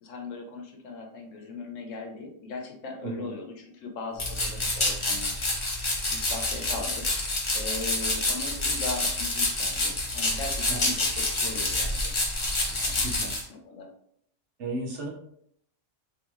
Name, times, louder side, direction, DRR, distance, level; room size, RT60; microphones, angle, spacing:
voice 1, 0.0-7.1 7.5-12.1 12.8-13.0 13.4-13.9, left 3 dB, 75° left, 3 dB, 1.1 m, -39 dB
sound 1, 4.2-13.4, left 2 dB, 30° left, 0.6 m, -28 dB
voice 2, 13.0-13.4 14.6-15.1, right 2 dB, 70° right, -1 dB, 1.0 m, -34 dB
3.6 x 3.0 x 3.0 m, 0.69 s
omnidirectional pair, 1.3 m